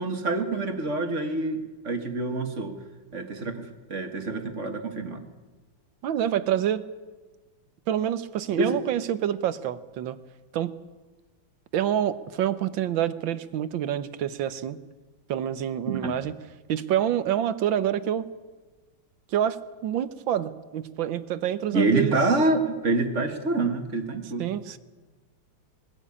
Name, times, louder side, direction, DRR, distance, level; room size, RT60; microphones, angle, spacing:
voice 1, 0.0-2.8 3.1-5.2 8.6-8.8 15.9-16.1 21.7-24.5, right 3 dB, 35° right, 6 dB, 1.8 m, -26 dB
voice 2, 6.0-6.8 7.9-10.2 10.5-10.7 11.7-14.8 15.3-16.3 16.7-18.3 19.3-22.1 24.4-24.8, right 10 dB, 65° right, 13 dB, 1.5 m, -27 dB
21.0 x 15.5 x 8.5 m, 1.3 s
omnidirectional pair, 2.4 m